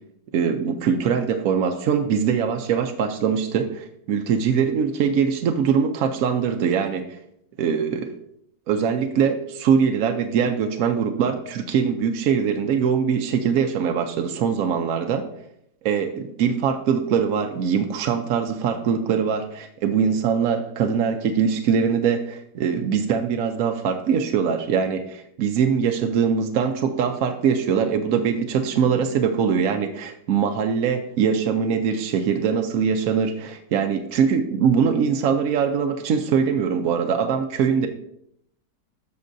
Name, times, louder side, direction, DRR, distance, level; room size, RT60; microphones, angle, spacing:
voice 1, 0.3-7.2 7.6-8.1 8.7-15.3 15.8-37.9, right 7 dB, 65° right, 5 dB, 0.9 m, -22 dB
13.5 x 5.9 x 2.6 m, 0.75 s
omnidirectional pair, 1.8 m